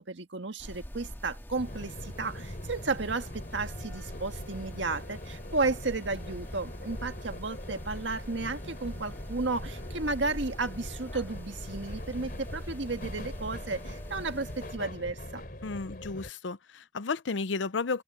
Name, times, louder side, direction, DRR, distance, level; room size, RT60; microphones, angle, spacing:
voice 1, 0.0-15.4, right 3 dB, 80° right, 1.6 m, -33 dB
sound 1, 0.6-14.8, equal, 10° left, 2.0 m, -44 dB
sound 2, 1.5-16.3, left 1 dB, 50° left, 3.8 m, -42 dB
voice 2, 15.6-18.0, left 4 dB, 85° left, 0.7 m, -33 dB
head